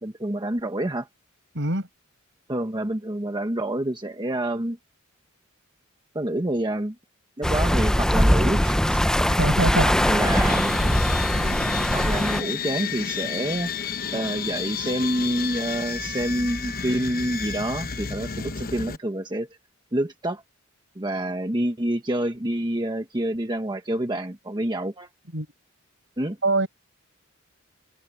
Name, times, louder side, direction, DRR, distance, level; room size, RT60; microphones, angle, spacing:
voice 1, 0.0-1.1 2.5-4.8 6.1-6.9 7.4-9.0 9.3-9.4 9.8-10.7 11.9-13.7 14.1-19.5 19.9-20.4 21.0-25.1 26.2-26.4, right 1 dB, 20° right, 1.2 m, -27 dB
voice 2, 1.5-1.9 9.3-9.9 25.3-25.5 26.4-26.7, right 2 dB, 60° right, 7.2 m, -23 dB
sound 1, 7.4-12.4, equal, 5° left, 0.7 m, -21 dB
sound 2, 10.0-19.0, left 6 dB, 45° left, 1.0 m, -31 dB
head